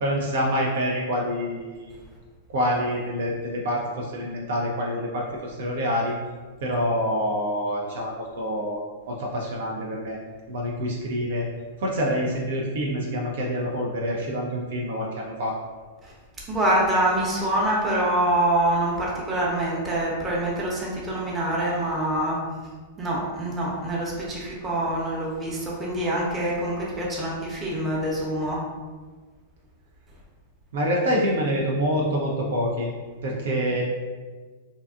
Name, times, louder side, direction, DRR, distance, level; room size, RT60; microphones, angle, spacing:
voice 1, 0.0-2.0 2.5-6.1 6.6-10.2 10.5-11.4 11.8-15.6 30.7-32.9 33.2-33.8, equal, 65° right, -2 dB, 0.4 m, -26 dB
voice 2, 16.5-22.4 23.0-28.6, right 1 dB, 20° right, -4 dB, 0.7 m, -25 dB
2.6 x 2.2 x 2.4 m, 1.4 s
hypercardioid pair, 105°, 0 cm